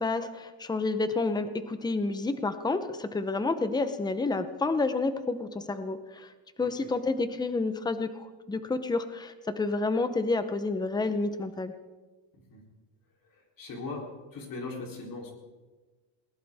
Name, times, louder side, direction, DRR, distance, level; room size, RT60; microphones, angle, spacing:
voice 1, 0.0-6.3 6.6-11.7, left 3 dB, 10° left, 10 dB, 0.7 m, -29 dB
voice 2, 6.6-6.9 12.3-12.6 13.3-15.3, left 3 dB, 40° left, 1 dB, 3.6 m, -40 dB
20.5 x 19.0 x 3.6 m, 1.3 s
cardioid pair, 160°, 49 cm